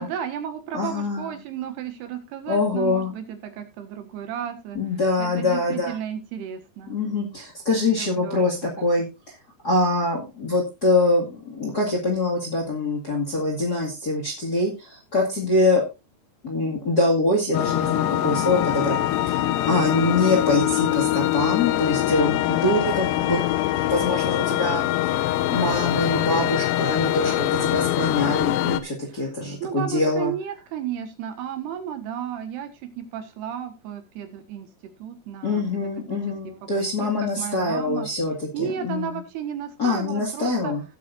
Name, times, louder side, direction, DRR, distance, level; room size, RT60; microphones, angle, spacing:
voice 1, 0.0-4.8 5.2-7.0 7.9-9.0 29.1-29.3 29.6-34.7 35.0-36.2 36.8-38.1 38.5-40.8, right 9 dB, 75° right, 7 dB, 3.4 m, -33 dB
voice 2, 0.7-1.4 2.5-3.1 4.7-5.9 6.9-9.0 9.6-15.8 16.4-23.4 23.7-24.9 25.5-30.3 35.4-39.2 39.8-40.8, left 2 dB, 30° left, 0 dB, 1.9 m, -24 dB
sound 1, 17.5-28.8, left 14 dB, 85° left, 2.0 m, -23 dB
16.5 x 8.4 x 2.6 m, 0.26 s
omnidirectional pair, 4.8 m